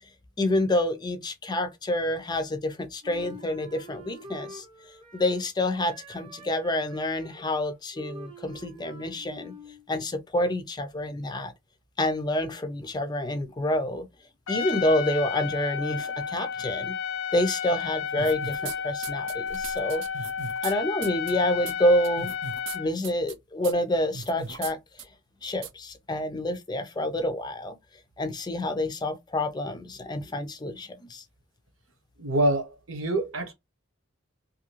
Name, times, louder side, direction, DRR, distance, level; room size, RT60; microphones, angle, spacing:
voice 1, 0.4-4.6 5.1-9.5 9.9-11.5 12.0-14.1 14.5-17.0 17.3-20.0 20.6-22.3 22.7-24.8 25.4-27.8 28.2-31.2, left 1 dB, 20° left, 0.4 m, -28 dB
Wind instrument woodwind instrument, 3.0-5.5 5.8-9.8, equal, 25° right, 0.8 m, -46 dB
Trumpet, 14.5-22.9, left 7 dB, 80° left, 0.6 m, -32 dB
sound 1, 18.2-18.8 19.0-20.7 21.0-21.3 21.7-21.8 22.0-22.8 23.0-23.3 23.6-23.7 24.1-24.7 25.0-25.1 25.6-25.7, right 6 dB, 65° right, 0.5 m, -37 dB
voice 2, 32.2-33.5, right 1 dB, 80° right, 1.0 m, -26 dB
2.7 x 2.5 x 2.8 m
head